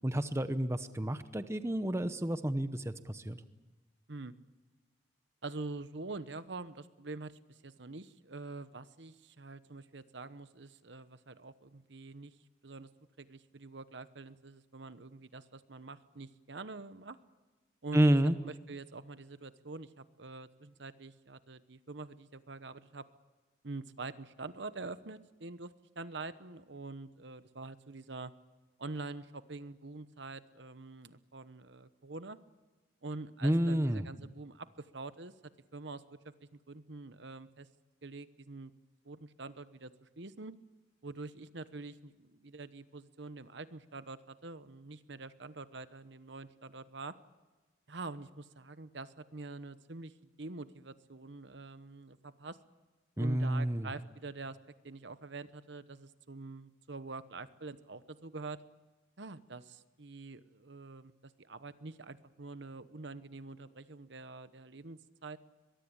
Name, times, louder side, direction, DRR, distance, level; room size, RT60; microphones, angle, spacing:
voice 1, 0.0-3.4 17.9-18.4 33.4-34.0 53.2-53.9, right 1 dB, 15° right, 10 dB, 0.8 m, -29 dB
voice 2, 5.4-12.4 12.6-12.9 13.2-17.2 17.8-18.2 18.4-23.1 23.6-28.3 28.8-32.4 33.0-35.3 35.7-37.7 38.0-38.7 39.0-40.5 41.0-47.1 47.9-52.6 53.2-54.6 54.8-58.6 59.2-65.4, right 3 dB, 60° right, 13 dB, 1.0 m, -45 dB
23.0 x 22.0 x 8.8 m, 1.2 s
head